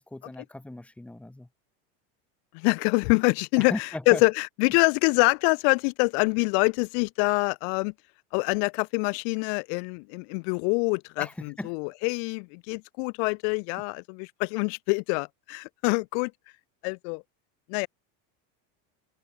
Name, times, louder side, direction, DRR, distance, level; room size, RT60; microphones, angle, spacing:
voice 1, 0.0-1.5 3.6-4.2 11.2-11.7, left 1 dB, 5° left, 3.5 m, -37 dB
voice 2, 2.5-7.9 8.3-16.3 16.8-17.2 17.7-17.9, left 40 dB or more, 55° left, 1.7 m, -25 dB
cardioid pair, 180°, 38 cm